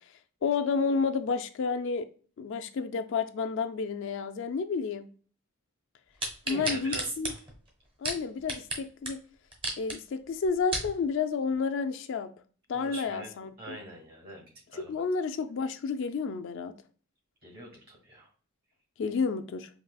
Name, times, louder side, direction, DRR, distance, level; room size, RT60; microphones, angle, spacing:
voice 1, 0.4-2.1 2.4-5.1 6.5-7.3 8.0-9.2 9.8-12.3 12.7-13.8 14.7-16.7 19.0-19.7, left 5 dB, 60° left, 0.3 m, -30 dB
sound 1, 6.2-8.8 9.1-9.2 9.5-10.0 10.4-10.9 11.5-11.6, right 1 dB, 25° right, 0.9 m, -33 dB
voice 2, 6.5-7.4 12.7-13.3 13.6-15.0 17.4-18.3, right 1 dB, 45° right, 1.7 m, -42 dB
4.7 x 2.7 x 2.2 m
head